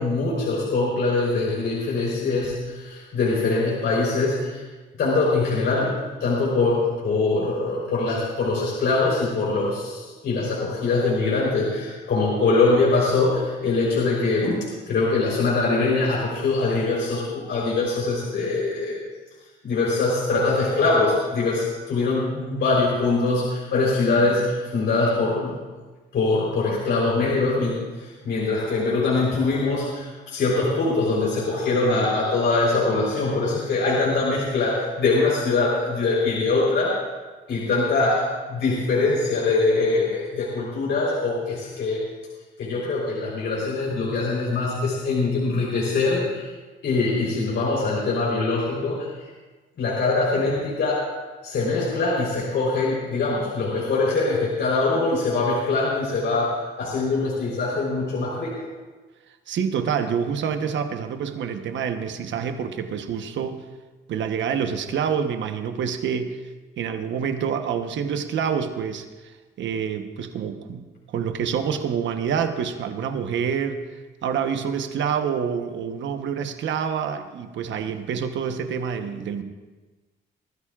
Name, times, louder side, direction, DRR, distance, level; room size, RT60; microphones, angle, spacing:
voice 1, 0.0-4.6 5.0-14.6 14.9-19.0 19.6-25.6 26.1-37.0 37.5-42.1 42.6-46.5 46.8-49.3 49.8-51.0 51.4-58.6, left 3 dB, 65° left, -5 dB, 3.9 m, -23 dB
voice 2, 59.5-63.6 64.1-66.4 66.8-73.8 74.2-79.4, right 7 dB, 70° right, 7 dB, 1.1 m, -27 dB
24.0 x 13.0 x 2.5 m, 1.3 s
cardioid pair, 90°, 20 cm